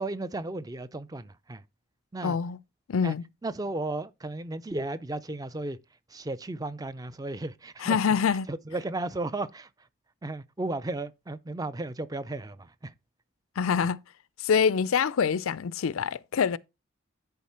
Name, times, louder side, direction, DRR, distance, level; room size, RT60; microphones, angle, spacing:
voice 1, 0.0-1.6 2.1-2.4 3.0-3.1 3.4-5.8 6.1-8.0 8.5-9.7 10.2-12.9, right 2 dB, 15° right, 0.4 m, -34 dB
voice 2, 2.2-2.6 2.9-3.2 7.8-8.5 13.6-14.0 14.4-16.6, left 6 dB, 75° left, 0.4 m, -25 dB
10.5 x 4.5 x 4.3 m
head